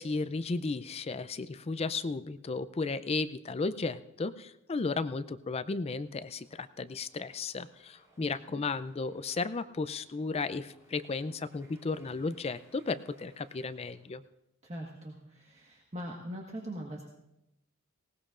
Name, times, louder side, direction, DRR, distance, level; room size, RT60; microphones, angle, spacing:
voice 1, 0.0-14.2, left 3 dB, 30° left, 14 dB, 0.4 m, -34 dB
sound 1, 5.9-14.3, right 1 dB, 15° right, 4.9 m, -66 dB
voice 2, 14.6-17.0, equal, 30° right, -1 dB, 1.5 m, -41 dB
19.5 x 18.0 x 2.5 m, 0.84 s
head